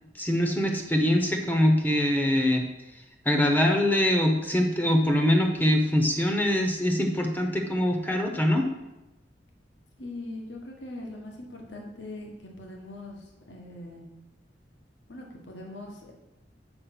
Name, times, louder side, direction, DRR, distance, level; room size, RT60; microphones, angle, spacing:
voice 1, 0.1-2.6 3.2-8.7, left 1 dB, 10° left, 3 dB, 0.8 m, -23 dB
voice 2, 10.0-14.1 15.1-16.1, left 2 dB, 75° left, 0 dB, 1.4 m, -41 dB
6.8 x 5.3 x 5.9 m, 0.99 s
head